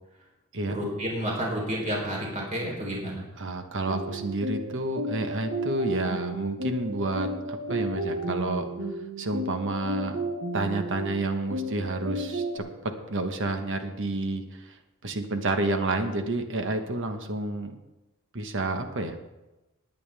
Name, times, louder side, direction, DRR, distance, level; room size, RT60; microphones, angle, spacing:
voice 1, 0.7-3.2, equal, 35° right, -2 dB, 3.8 m, -30 dB
voice 2, 3.4-8.7 9.2-10.2 10.5-17.7 18.3-19.1, right 2 dB, 55° right, 6 dB, 1.3 m, -30 dB
sound 1, 3.9-12.6, equal, 80° right, 3.6 m, -33 dB
19.5 x 9.4 x 3.5 m, 1.0 s
head